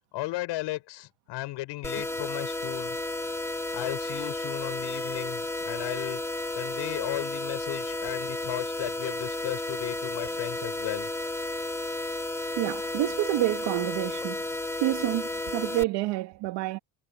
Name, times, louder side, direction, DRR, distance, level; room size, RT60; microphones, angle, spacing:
voice 1, 0.1-3.3 3.7-6.2 6.5-11.1, left 18 dB, 60° left, 5.8 m, -35 dB
sound 1, 1.8-15.8, left 2 dB, 5° left, 2.2 m, -32 dB
voice 2, 12.6-14.4 14.8-16.8, right 18 dB, 60° right, 2.1 m, -28 dB
cardioid pair, 125°, 48 cm